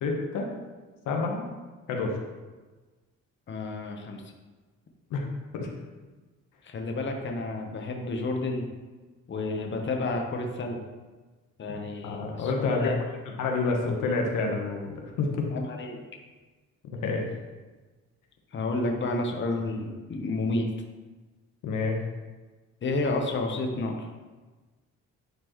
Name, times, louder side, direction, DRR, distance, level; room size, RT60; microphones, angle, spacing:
voice 1, 0.0-0.5 1.1-1.5 1.9-2.2 5.1-5.2 5.5-5.7 12.0-12.9 13.4-15.3 16.9-17.3 21.6-22.0, left 3 dB, 85° left, 1 dB, 1.1 m, -28 dB
voice 2, 3.5-4.2 6.6-8.7 9.3-10.8 11.6-13.0 15.5-16.0 18.5-20.7 22.8-24.1, left 2 dB, 40° left, 2 dB, 1.0 m, -30 dB
9.3 x 4.4 x 3.1 m, 1.3 s
cardioid pair, 90°, 30 cm